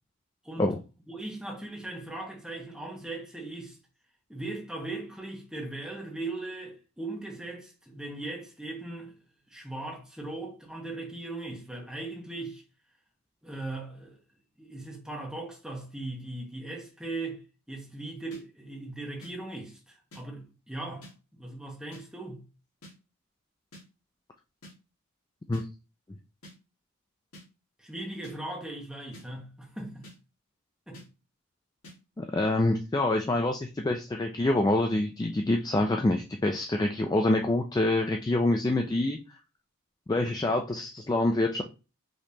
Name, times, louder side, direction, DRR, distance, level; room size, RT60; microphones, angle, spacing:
voice 1, 1.1-3.8 4.3-9.1 9.5-12.6 13.4-14.2 14.6-22.5 27.8-30.1 30.9-31.0, right 2 dB, 5° right, 1.1 m, -39 dB
sound 1, 18.3-18.4 19.2-19.3 20.1-20.2 21.0-21.1 21.9-22.0 22.8-22.9 23.7-23.8 24.6-24.7 25.5-25.6 26.4-26.5 27.3-27.4 28.2-28.3 29.1-29.3 30.0-30.2 30.9-31.1 31.8-32.0, left 1 dB, 80° left, 2.0 m, -48 dB
voice 2, 32.2-39.2 40.1-41.6, left 2 dB, 20° left, 0.3 m, -26 dB
5.1 x 3.1 x 2.8 m
head